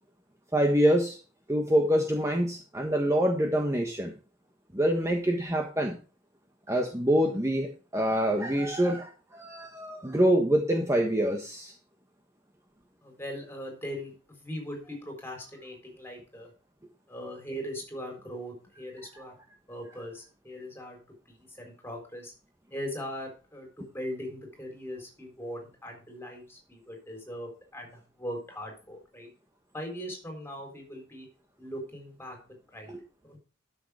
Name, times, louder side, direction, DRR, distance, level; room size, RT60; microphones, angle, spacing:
voice 1, 0.5-1.2 1.5-4.1 4.7-6.0 6.7-11.7, equal, 15° right, 3 dB, 1.3 m, -25 dB
voice 2, 13.0-16.5 17.1-19.3 19.7-21.0 21.3-22.3 22.7-29.3 29.7-31.3 31.6-32.4 32.7-32.9 33.2-33.4, equal, 10° left, 2 dB, 4.0 m, -40 dB
12.5 x 6.5 x 4.9 m, 0.36 s
head